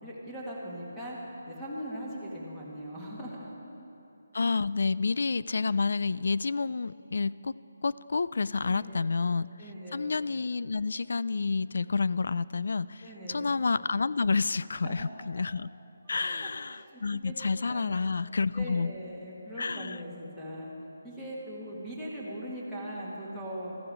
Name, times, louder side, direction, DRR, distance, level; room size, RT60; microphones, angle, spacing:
voice 1, 0.0-1.2 1.5-3.5 8.6-9.0 9.6-10.0 13.0-13.5 14.8-15.0 16.2-17.3 17.7-17.9 18.6-20.7 21.0-23.8, equal, 5° left, -8 dB, 1.9 m, -40 dB
voice 2, 4.3-7.5 7.8-9.5 9.9-15.7 16.1-18.9 19.6-20.0, left 4 dB, 65° left, 18 dB, 0.3 m, -29 dB
15.0 x 14.0 x 5.0 m, 3.0 s
hypercardioid pair, 170°, 0 cm